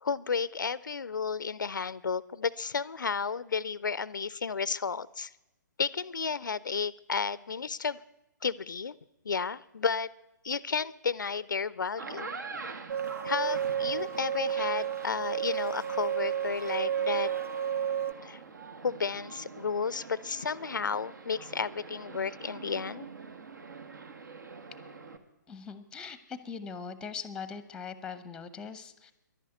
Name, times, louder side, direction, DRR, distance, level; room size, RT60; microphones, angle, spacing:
voice 1, 0.0-5.3 5.8-8.0 8.4-8.9 9.2-10.1 10.4-12.3 13.2-17.3 18.2-18.4 18.8-23.1, left 5 dB, 75° left, 20 dB, 0.4 m, -32 dB
sound 1, 11.8-25.2, right 4 dB, 70° right, 1.4 m, -45 dB
sound 2, 12.9-18.1, right 9 dB, 20° right, 0.6 m, -31 dB
voice 2, 25.5-29.1, left 6 dB, 5° left, 13 dB, 0.8 m, -41 dB
11.0 x 10.0 x 9.2 m, 0.94 s
figure-of-eight pair, 130°, 10 cm